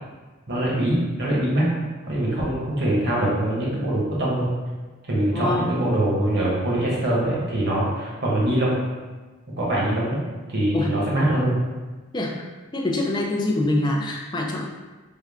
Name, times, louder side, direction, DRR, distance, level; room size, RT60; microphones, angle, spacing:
voice 1, 0.5-1.6 2.1-4.5 5.1-8.8 9.5-10.2 10.5-11.6, right 1 dB, 50° right, -6 dB, 1.0 m, -23 dB
voice 2, 5.3-5.7 10.7-10.9 12.1-12.3 12.7-14.7, left 1 dB, 20° left, -1 dB, 0.4 m, -24 dB
3.6 x 2.2 x 3.5 m, 1.3 s
head